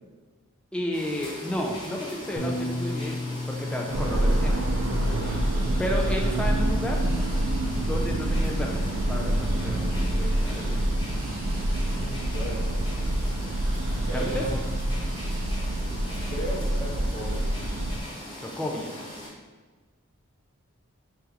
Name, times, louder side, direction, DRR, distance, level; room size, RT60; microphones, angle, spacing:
voice 1, 0.7-4.6 5.8-7.0 7.8-8.8 9.1-10.9 14.1-14.5 18.4-19.0, equal, 5° left, -1 dB, 0.3 m, -32 dB
sound 1, 0.9-19.3, left 1 dB, 20° left, 1.2 m, -41 dB
Bass guitar, 2.4-8.6, left 1 dB, 40° left, 0.6 m, -37 dB
sound 2, 3.9-18.0, right 1 dB, 75° right, 0.4 m, -26 dB
voice 2, 11.8-12.7 14.1-14.7 15.8-16.0 16.2-17.4, equal, 75° left, -5 dB, 1.1 m, -35 dB
3.3 x 2.9 x 3.6 m, 1.3 s
head